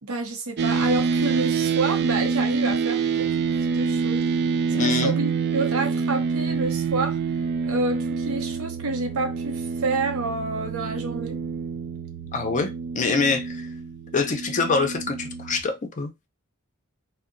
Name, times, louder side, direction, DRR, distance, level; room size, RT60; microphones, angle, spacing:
voice 1, 0.0-3.4 3.7-4.3 4.8-7.2 7.7-11.4, right 3 dB, 75° right, 0.7 m, -28 dB
sound 1, 0.6-15.6, right 5 dB, 50° right, 0.3 m, -26 dB
voice 2, 4.7-5.2 12.3-13.7 14.1-16.1, left 4 dB, 35° left, 0.5 m, -25 dB
2.7 x 2.1 x 2.5 m
head